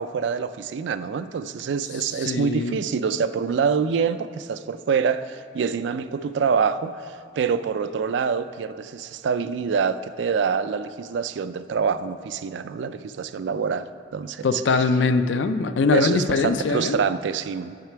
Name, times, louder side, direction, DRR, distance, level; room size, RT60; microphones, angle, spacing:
voice 1, 0.0-14.9 15.9-17.8, right 6 dB, 80° right, 13 dB, 0.3 m, -26 dB
voice 2, 2.2-2.8 14.4-17.0, left 4 dB, 85° left, 10 dB, 0.4 m, -22 dB
9.3 x 5.8 x 4.6 m, 2.6 s
head